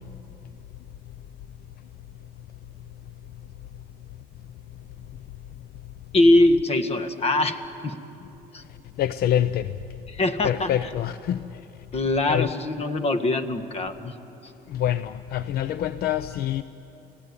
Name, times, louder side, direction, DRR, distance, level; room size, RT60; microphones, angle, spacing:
voice 1, 6.1-8.0 8.5-8.6 10.1-10.7 11.9-14.1, left 1 dB, 35° left, 1.6 m, -22 dB
voice 2, 9.0-9.7 10.4-11.4 12.3-12.5 14.7-16.6, left 11 dB, 65° left, 0.6 m, -25 dB
29.5 x 17.5 x 9.7 m
cardioid pair, 110°, 17 cm